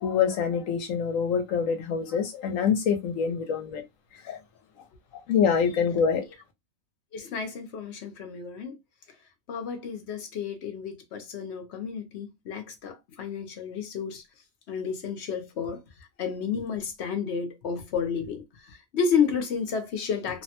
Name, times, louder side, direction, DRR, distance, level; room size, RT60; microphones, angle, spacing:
voice 1, 0.0-3.8 4.2-4.4 5.3-6.2, left 6 dB, 75° left, 1.1 m, -25 dB
voice 2, 7.1-8.8 9.5-14.2 14.7-15.8 16.2-18.4 18.7-20.4, left 6 dB, 60° left, 0.9 m, -31 dB
3.2 x 2.1 x 2.8 m
omnidirectional pair, 1.4 m